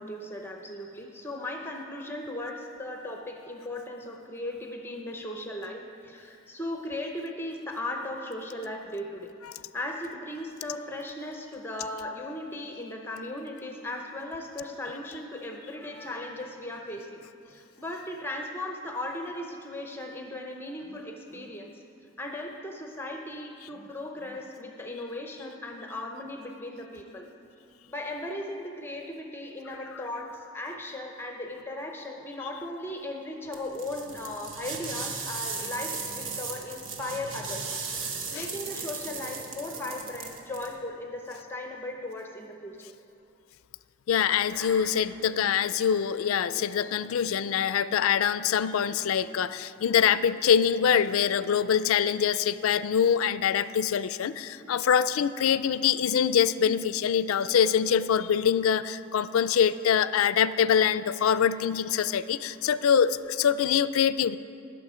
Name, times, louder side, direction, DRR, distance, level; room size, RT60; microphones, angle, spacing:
voice 1, 0.0-9.3 9.7-21.8 22.2-27.3 27.9-37.7 38.3-42.9 44.5-46.0 46.5-47.0 49.3-49.4 54.6-54.7, left 1 dB, 10° left, 2 dB, 0.7 m, -37 dB
sound 1, 33.5-40.7, right 4 dB, 70° right, 1.2 m, -37 dB
voice 2, 44.1-64.4, left 8 dB, 80° left, 15 dB, 0.4 m, -24 dB
19.0 x 6.9 x 5.0 m, 2.7 s
head